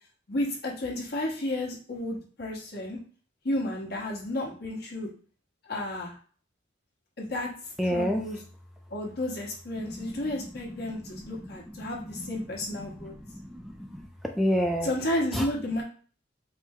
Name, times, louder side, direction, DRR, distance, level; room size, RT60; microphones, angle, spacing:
voice 1, 0.3-3.0 3.4-5.1 5.6-6.1 7.2-8.4 8.9-13.1 14.8-15.8, left 1 dB, 60° left, -1 dB, 1.2 m, -32 dB
voice 2, 7.8-8.2 9.8-10.4 10.8-10.9 11.4-12.3 12.7-14.1 14.4-15.0 15.3-15.5, equal, ahead, 2 dB, 0.3 m, -31 dB
4.5 x 2.1 x 3.5 m, 0.41 s
head